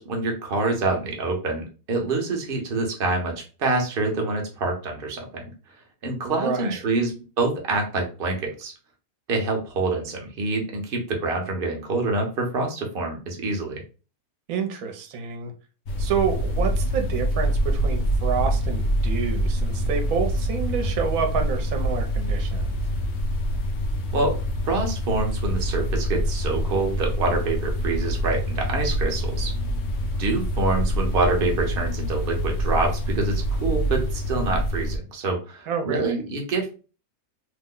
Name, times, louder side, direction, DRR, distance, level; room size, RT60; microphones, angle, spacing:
voice 1, 0.0-5.4 6.0-8.7 9.3-13.8 24.1-24.4 24.6-29.5 30.2-36.7, right 3 dB, 50° right, 2 dB, 0.8 m, -26 dB
voice 2, 6.2-6.8 14.5-15.5 16.0-22.7 35.7-36.2, right 6 dB, 70° right, 5 dB, 1.1 m, -28 dB
sound 1, 15.9-35.0, equal, 65° left, 0.7 m, -25 dB
2.8 x 2.1 x 3.6 m, 0.35 s
omnidirectional pair, 1.5 m